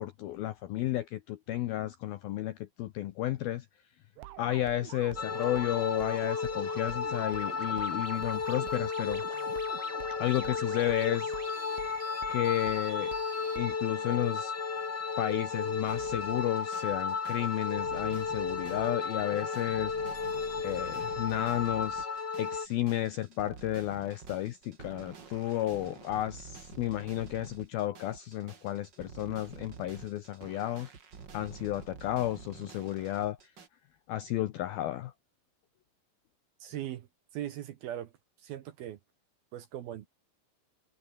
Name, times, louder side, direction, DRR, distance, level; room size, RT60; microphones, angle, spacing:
voice 1, 0.0-3.7 4.4-9.2 10.2-11.3 12.3-13.1 13.6-14.6 15.2-19.9 20.6-22.1 22.4-30.9 31.3-33.4 34.1-35.1, left 14 dB, 75° left, 2.2 m, -32 dB
sound 1, 4.2-13.8, right 14 dB, 85° right, 4.1 m, -47 dB
sound 2, 5.2-22.7, left 5 dB, 35° left, 2.0 m, -34 dB
sound 3, 15.9-33.7, right 6 dB, 40° right, 1.5 m, -49 dB
voice 2, 36.6-37.1 37.3-38.1 38.4-39.0 39.5-40.1, right 12 dB, 70° right, 2.5 m, -39 dB
omnidirectional pair, 5.6 m